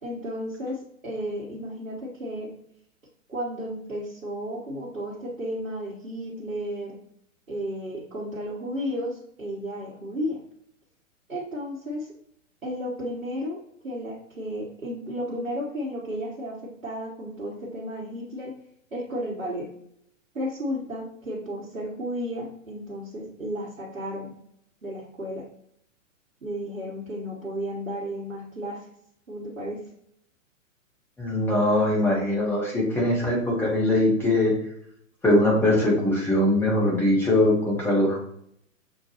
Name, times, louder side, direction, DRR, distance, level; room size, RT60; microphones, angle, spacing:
voice 1, 0.0-2.5 3.3-7.0 7.5-10.4 11.3-12.2 12.6-13.6 13.8-18.5 18.9-19.7 20.3-24.3 24.8-25.4 26.4-28.9 29.3-29.8, equal, 80° right, -5 dB, 1.2 m, -33 dB
voice 2, 31.2-34.6 35.2-38.2, left 1 dB, 5° left, -4 dB, 0.9 m, -21 dB
6.4 x 2.2 x 2.9 m, 0.71 s
figure-of-eight pair, 115°, 40 cm